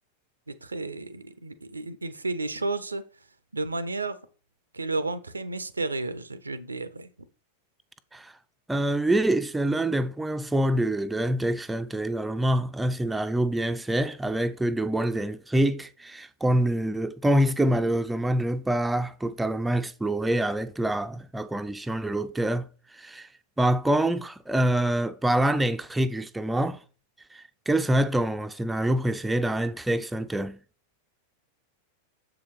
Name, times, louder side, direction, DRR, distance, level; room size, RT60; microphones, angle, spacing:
voice 1, 0.5-3.0 3.5-4.2 4.7-7.1, right 3 dB, 80° right, 0.4 m, -32 dB
voice 2, 8.7-22.7 22.9-23.3 23.6-26.8 27.3-30.6, right 1 dB, 5° right, 0.3 m, -26 dB
6.7 x 4.8 x 3.0 m
figure-of-eight pair, 90°, 0 cm